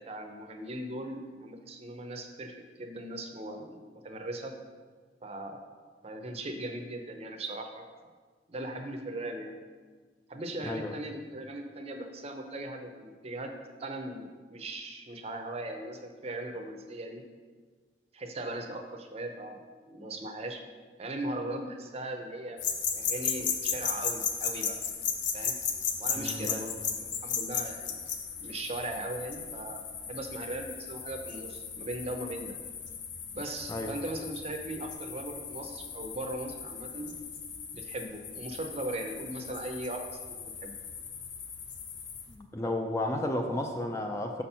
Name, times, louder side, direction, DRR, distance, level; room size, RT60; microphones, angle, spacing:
voice 1, 0.1-4.5 5.2-5.6 6.0-8.1 8.5-9.5 10.3-13.5 13.8-17.2 18.1-19.6 19.9-20.6 21.0-22.6 23.0-24.8 25.3-25.6 26.0-28.0 28.4-29.8 30.1-32.5 33.3-37.1 37.7-40.7, right 1 dB, 35° right, 4 dB, 0.6 m, -39 dB
voice 2, 10.6-11.0 26.1-26.6 33.7-33.9 42.3-44.4, left 1 dB, 15° left, 3 dB, 0.4 m, -33 dB
sound 1, 22.6-42.3, left 6 dB, 75° left, 0.7 m, -36 dB
6.1 x 4.3 x 5.5 m, 1.5 s
head